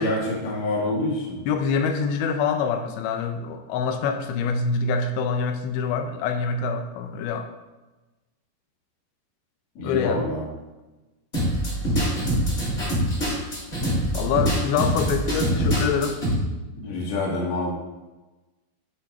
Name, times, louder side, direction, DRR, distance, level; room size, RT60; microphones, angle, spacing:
voice 1, 0.0-1.4 9.8-10.5 16.8-17.7, left 2 dB, 50° left, -4 dB, 2.3 m, -26 dB
voice 2, 1.5-7.5 9.8-10.3 14.1-16.2, left 5 dB, 80° left, 7 dB, 2.8 m, -25 dB
sound 1, 11.3-16.3, equal, 35° left, 1.2 m, -24 dB
8.8 x 4.3 x 4.2 m, 1.1 s
omnidirectional pair, 5.2 m